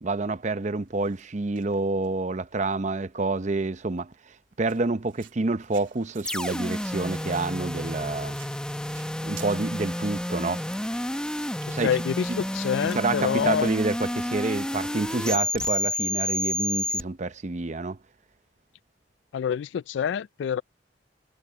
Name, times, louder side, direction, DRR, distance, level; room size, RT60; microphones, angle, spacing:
voice 1, 0.0-4.1 4.6-8.4 9.2-10.6 11.7-11.9 12.3-12.4 12.9-18.0, right 3 dB, 40° right, 0.7 m, -28 dB
sound 1, 0.8-1.2 1.6-2.7 3.4-3.5 4.0-4.1 4.6-17.0, right 11 dB, 85° right, 3.3 m, -53 dB
sound 2, 6.2-17.0, left 1 dB, 5° left, 0.8 m, -30 dB
voice 2, 11.8-13.7 19.3-20.6, left 7 dB, 75° left, 0.3 m, -27 dB
head